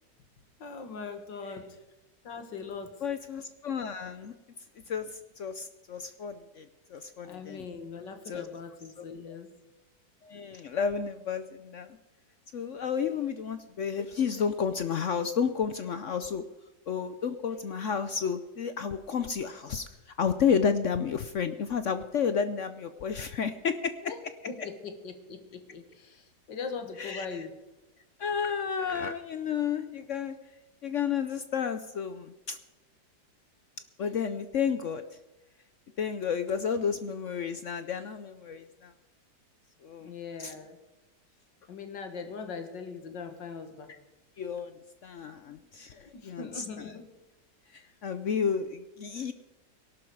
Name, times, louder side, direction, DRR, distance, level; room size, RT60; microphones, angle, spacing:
voice 1, 0.6-1.7 2.2-2.9 7.2-9.5 24.0-24.2 24.5-27.5 40.0-40.8 41.7-43.9 46.1-47.0, left 5 dB, 85° left, 7 dB, 2.3 m, -40 dB
voice 2, 3.0-4.3 4.9-7.7 8.3-8.5 9.0-9.3 10.2-12.0 12.5-16.4 16.9-19.8 20.2-23.9 27.0-27.4 28.2-30.3 30.8-32.6 34.0-35.0 36.0-38.9 39.8-40.1 40.4-40.5 44.4-44.7 45.0-46.9 47.7-49.3, left 6 dB, 60° left, 10 dB, 0.8 m, -31 dB
18.5 x 11.5 x 4.7 m, 1.1 s
omnidirectional pair, 1.9 m